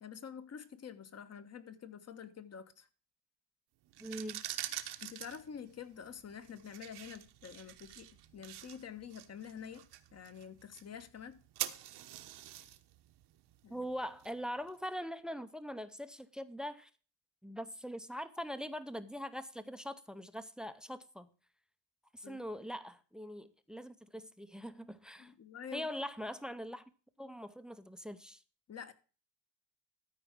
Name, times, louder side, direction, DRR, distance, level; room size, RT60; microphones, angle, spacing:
voice 1, 0.0-2.9 5.0-9.9 10.1-11.4 13.6-13.8 22.2-22.4 25.2-25.9 28.7-28.9, left 7 dB, 35° left, 1.2 m, -48 dB
sound 1, 3.9-14.7, right 13 dB, 65° right, 1.1 m, -46 dB
voice 2, 4.0-4.4 13.7-16.9 17.4-21.3 22.1-25.3 25.7-26.8 27.2-28.4, equal, ahead, 0.6 m, -42 dB
13.5 x 4.7 x 5.9 m
cardioid pair, 105°, 42 cm